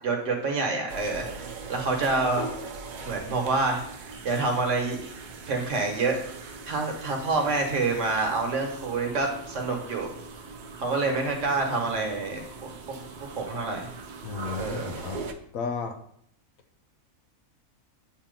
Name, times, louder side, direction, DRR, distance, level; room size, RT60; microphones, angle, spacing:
voice 1, 0.0-2.5 3.0-3.8 4.2-5.1 5.5-6.2 6.7-10.1 10.8-12.7 13.2-13.9 14.6-14.9, right 3 dB, 60° right, 2 dB, 1.4 m, -27 dB
sound 1, 0.9-15.3, right 4 dB, 75° right, 0.4 m, -41 dB
voice 2, 14.2-15.3 15.5-16.0, left 5 dB, 75° left, 7 dB, 1.1 m, -33 dB
7.3 x 2.8 x 5.1 m, 0.67 s
omnidirectional pair, 1.5 m